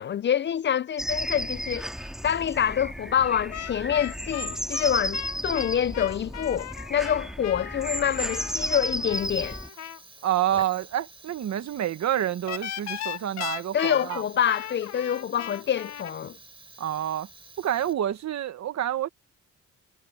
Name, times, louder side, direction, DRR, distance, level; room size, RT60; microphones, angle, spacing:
voice 1, 0.0-9.6 13.7-16.4, left 9 dB, 40° left, 0.4 m, -26 dB
sound 1, 1.0-9.7, equal, ahead, 2.2 m, -33 dB
sound 2, 3.5-10.0 12.5-16.1, left 11 dB, 60° left, 1.0 m, -37 dB
Fire, 9.0-18.3, right 3 dB, 20° right, 3.9 m, -50 dB
voice 2, 10.2-14.2 16.8-17.3 17.6-19.1, right 11 dB, 65° right, 1.6 m, -28 dB
cardioid pair, 90°, 30 cm